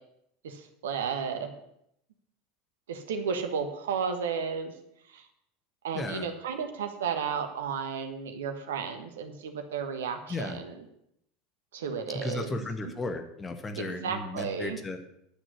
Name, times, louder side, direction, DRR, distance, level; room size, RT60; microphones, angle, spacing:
voice 1, 0.4-1.5 2.9-4.7 5.1-5.3 5.8-10.7 11.7-12.7 13.7-14.8, right 6 dB, 70° right, 7 dB, 1.4 m, -33 dB
voice 2, 5.9-6.3 10.3-10.6 12.1-15.0, left 2 dB, 20° left, 7 dB, 1.5 m, -35 dB
10.0 x 6.2 x 8.0 m, 0.77 s
figure-of-eight pair, 75°, 0 cm